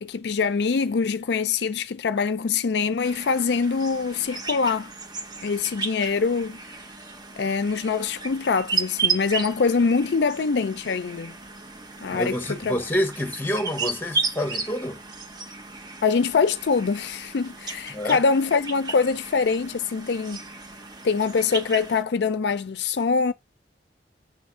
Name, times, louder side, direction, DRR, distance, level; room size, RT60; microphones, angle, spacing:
voice 1, 0.0-4.9 5.4-6.6 7.4-11.3 12.0-12.8 16.0-20.4 21.0-23.3, left 5 dB, 65° left, 0.4 m, -24 dB
sound 1, 3.0-22.0, right 4 dB, 25° right, 0.9 m, -34 dB
voice 2, 12.1-15.0 17.9-18.2, equal, 10° left, 1.2 m, -28 dB
7.0 x 3.5 x 5.5 m
head